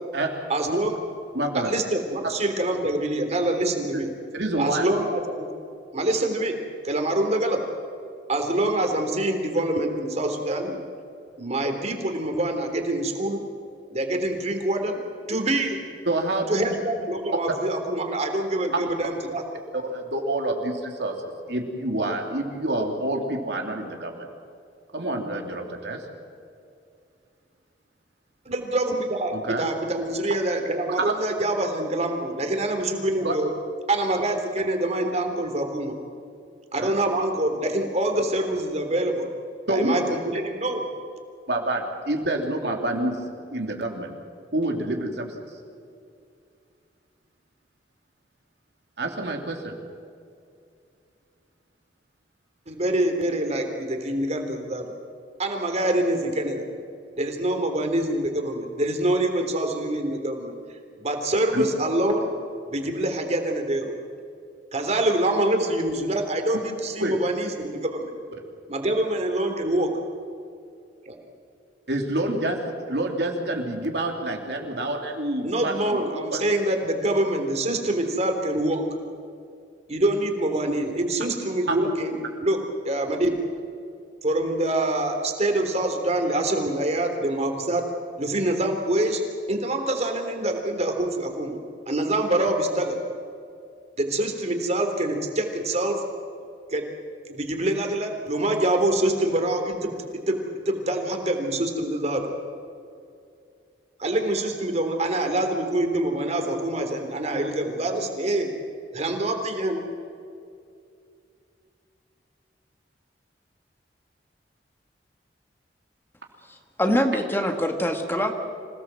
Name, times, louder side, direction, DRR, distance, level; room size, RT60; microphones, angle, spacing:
voice 1, 0.5-0.9 1.7-4.1 4.6-5.5 5.9-6.6 6.8-7.6 8.3-10.7 11.4-13.4 13.9-15.0 15.3-15.8 16.5-19.4 28.5-33.5 33.9-35.9 36.7-39.3 39.7-40.8 52.7-54.9 55.4-56.7 57.2-60.5 61.0-62.3 62.7-63.9 64.7-68.1 68.7-69.9 71.1-71.2 75.4-78.8 79.9-82.6 82.9-83.3 84.2-87.8 88.2-89.2 89.5-91.6 91.9-93.0 94.0-96.0 96.7-96.8 97.3-100.4 100.7-102.3 104.0-108.5 108.9-109.8, right 1 dB, 40° right, 4 dB, 3.5 m, -25 dB
voice 2, 1.3-1.7 2.2-2.3 3.9-4.0 4.3-4.8 16.1-16.8 19.7-24.3 24.9-26.0 29.3-29.7 31.0-31.1 33.2-33.3 36.8-36.9 39.7-40.0 41.5-43.2 43.5-44.1 44.5-45.4 49.0-49.8 61.5-61.6 67.0-67.2 71.9-76.4 81.7-81.8, right 1 dB, 70° right, 2 dB, 3.3 m, -27 dB
voice 3, 116.5-118.3, equal, 15° left, 4 dB, 1.8 m, -24 dB
26.5 x 18.0 x 7.8 m, 2.4 s
head